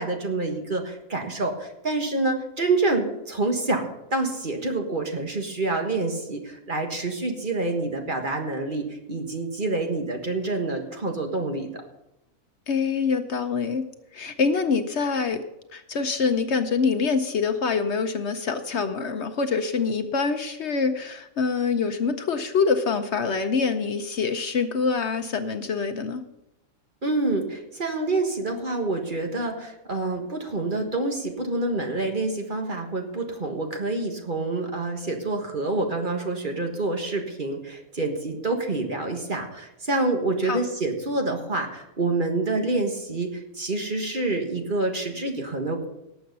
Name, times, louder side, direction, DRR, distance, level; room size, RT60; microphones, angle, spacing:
voice 1, 0.0-11.8 27.0-45.9, right 2 dB, 35° right, 3 dB, 1.7 m, -27 dB
voice 2, 12.7-13.8 14.1-15.4 15.7-26.2 40.4-40.6, left 5 dB, 60° left, 8 dB, 1.0 m, -25 dB
18.5 x 7.1 x 5.4 m, 0.89 s
omnidirectional pair, 1.4 m